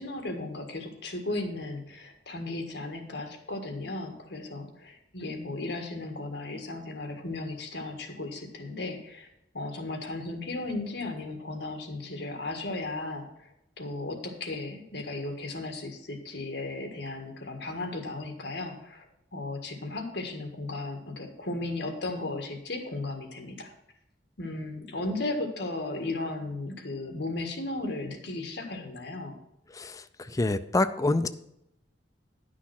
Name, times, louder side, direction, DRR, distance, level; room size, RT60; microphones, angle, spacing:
voice 1, 0.0-9.3 9.5-13.5 13.8-19.1 19.3-23.7 24.4-29.3, left 2 dB, 65° left, 4 dB, 1.7 m, -35 dB
voice 2, 29.7-31.3, left 2 dB, 20° left, 10 dB, 0.4 m, -27 dB
10.5 x 6.2 x 5.9 m, 0.81 s
head